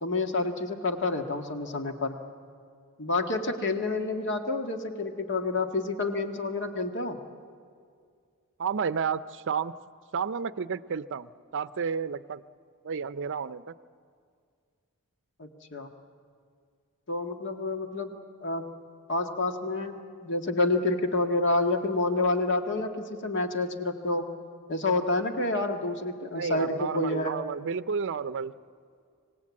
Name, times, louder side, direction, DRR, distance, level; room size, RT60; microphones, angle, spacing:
voice 1, 0.0-2.1 3.0-7.2 15.4-15.9 17.1-18.6 19.1-24.2 24.7-27.3, left 2 dB, 55° left, 5 dB, 1.7 m, -28 dB
voice 2, 8.6-9.7 10.1-12.4 12.8-13.7 26.3-28.5, right 6 dB, 60° right, 14 dB, 0.6 m, -31 dB
26.0 x 18.5 x 8.6 m, 2.2 s
head